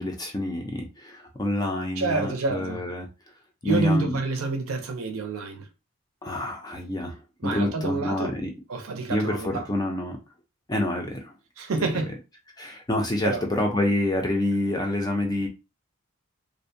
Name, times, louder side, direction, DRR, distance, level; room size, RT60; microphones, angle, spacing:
voice 1, 0.0-3.1 3.6-4.1 6.2-8.5 9.1-10.2 10.7-11.3 11.8-11.9 12.6-15.5, left 1 dB, 15° left, 0.4 m, -27 dB
voice 2, 2.0-2.8 3.6-5.7 7.4-8.3 8.7-9.6 11.6-12.1 13.2-13.4, right 3 dB, 70° right, 0.5 m, -28 dB
2.5 x 2.1 x 2.6 m
head